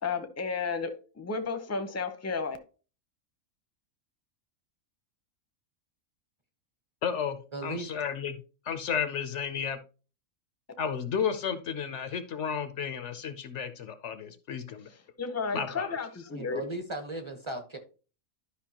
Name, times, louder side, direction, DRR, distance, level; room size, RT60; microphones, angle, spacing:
voice 1, 0.0-2.6 15.2-16.6, left 4 dB, 15° left, 0.7 m, -32 dB
voice 2, 7.0-8.4 8.7-9.8 10.8-14.9 15.5-15.9, left 7 dB, 65° left, 1.0 m, -33 dB
voice 3, 7.5-7.9 16.3-17.8, right 2 dB, 25° right, 0.9 m, -36 dB
11.5 x 5.4 x 2.9 m
omnidirectional pair, 1.4 m